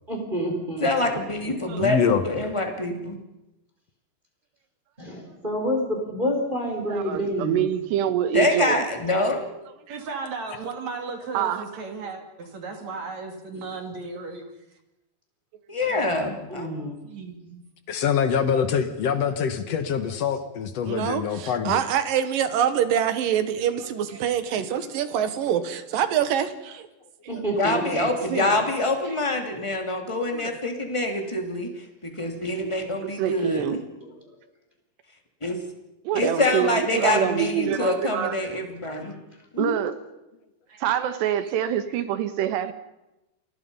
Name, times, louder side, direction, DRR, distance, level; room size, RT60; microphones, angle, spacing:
voice 1, 0.1-0.9 5.0-7.7 16.5-17.0 24.7-24.9 25.5-25.6 27.3-28.1 34.0-34.3 39.0-39.2, equal, 10° right, 1 dB, 4.1 m, -29 dB
voice 2, 0.8-3.2 8.3-9.4 15.7-16.7 27.6-33.8 35.4-35.6 36.1-39.1 39.5-39.8, left 2 dB, 10° left, 3 dB, 1.9 m, -25 dB
voice 3, 1.8-2.2 17.9-21.8, left 7 dB, 65° left, 9 dB, 1.6 m, -24 dB
voice 4, 6.9-8.8 9.9-10.0 11.3-11.7 33.0-33.8 36.1-38.6 38.9-39.0 39.6-40.0 40.8-42.7, right 10 dB, 90° right, 11 dB, 3.6 m, -26 dB
voice 5, 9.9-14.4 15.9-16.2 16.8-17.6 20.3-20.4 23.3-23.4 23.7-24.2 27.3-27.4 28.3-29.2 40.7-40.9, right 4 dB, 50° right, 4 dB, 3.2 m, -36 dB
voice 6, 20.9-26.9 30.3-30.6, right 9 dB, 65° right, 11 dB, 2.8 m, -25 dB
28.5 x 22.0 x 5.5 m, 0.95 s
omnidirectional pair, 4.7 m